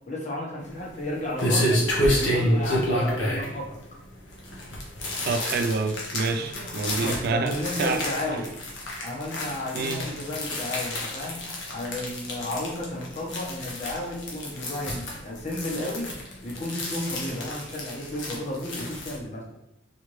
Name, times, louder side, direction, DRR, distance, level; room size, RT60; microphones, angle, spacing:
voice 1, 0.1-3.8 6.4-6.7 7.0-8.5 9.0-11.4 11.7-16.1 16.4-19.5, left 1 dB, 35° left, -3 dB, 1.0 m, -33 dB
sound 1, 0.6-19.2, equal, 70° left, 1.1 m, -30 dB
voice 2, 5.3-8.0 9.7-10.0, right 4 dB, 55° right, 6 dB, 0.3 m, -27 dB
4.4 x 3.3 x 3.1 m, 0.83 s
head